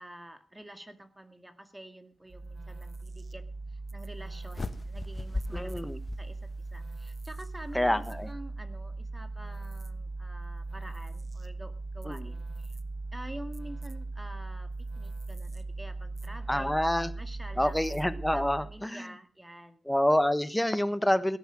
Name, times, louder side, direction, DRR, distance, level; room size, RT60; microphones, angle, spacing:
voice 1, 0.0-5.9 6.2-12.8 13.1-18.0 18.3-19.8, right 1 dB, 10° right, 9 dB, 1.9 m, -48 dB
sound 1, 2.3-18.9, right 3 dB, 40° right, 1.2 m, -39 dB
sound 2, 4.5-6.9, left 3 dB, 30° left, 1.4 m, -38 dB
voice 2, 5.5-6.0 7.7-8.3 12.1-12.3 16.5-17.1 17.6-19.1 19.9-21.4, left 1 dB, 5° left, 13 dB, 1.3 m, -27 dB
17.0 x 10.5 x 6.1 m, 0.38 s
cardioid pair, 85°, 0 cm